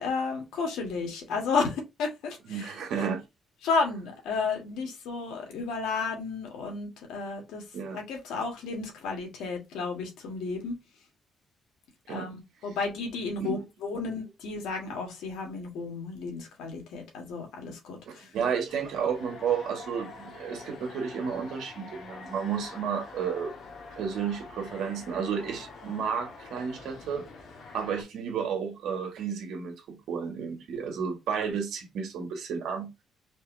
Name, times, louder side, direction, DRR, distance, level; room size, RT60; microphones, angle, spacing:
voice 1, 0.0-2.7 3.6-7.6 7.9-10.8 12.1-18.3, left 4 dB, 90° left, 1.6 m, -32 dB
voice 2, 2.5-3.2 7.7-8.0 12.1-12.3 13.4-13.6 18.0-23.5 23.9-27.2 27.7-32.9, right 7 dB, 80° right, 1.5 m, -32 dB
sound 1, 18.7-28.0, left 4 dB, 70° left, 1.5 m, -46 dB
4.5 x 3.0 x 2.6 m
cardioid pair, 90°, 0 cm